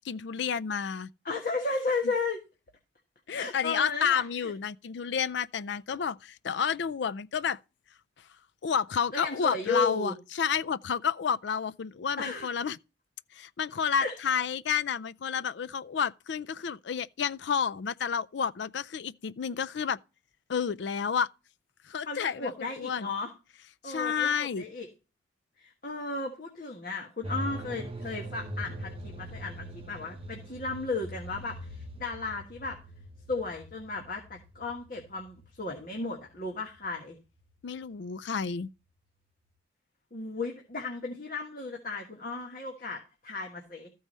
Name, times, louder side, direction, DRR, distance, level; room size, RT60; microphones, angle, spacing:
voice 1, 0.0-1.1 3.3-7.6 8.6-12.8 13.3-20.0 20.5-21.3 21.9-23.1 23.8-24.6 37.6-38.7, left 7 dB, 70° left, 0.4 m, -30 dB
voice 2, 1.2-2.4 3.3-4.5 9.1-10.1 12.2-12.5 14.0-14.1 22.0-23.3 23.8-24.9 25.6-32.8 33.3-37.2 40.1-43.9, left 3 dB, 45° left, 1.5 m, -34 dB
sound 1, 27.2-37.1 37.4-37.5, equal, 30° right, 0.8 m, -42 dB
13.5 x 4.7 x 5.4 m
head